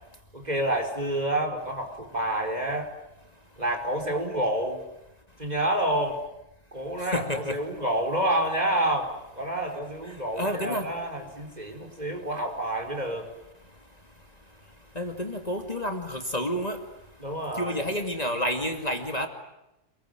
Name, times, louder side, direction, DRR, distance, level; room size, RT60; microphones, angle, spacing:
voice 1, 0.3-2.9 3.6-4.8 5.4-6.2 6.7-13.2 17.2-17.9, right 1 dB, 35° right, 3 dB, 5.1 m, -28 dB
voice 2, 7.0-7.6 10.4-10.9 15.0-16.8 17.6-19.3, equal, 30° left, 5 dB, 2.5 m, -29 dB
28.5 x 22.0 x 9.3 m, 0.91 s
omnidirectional pair, 1.3 m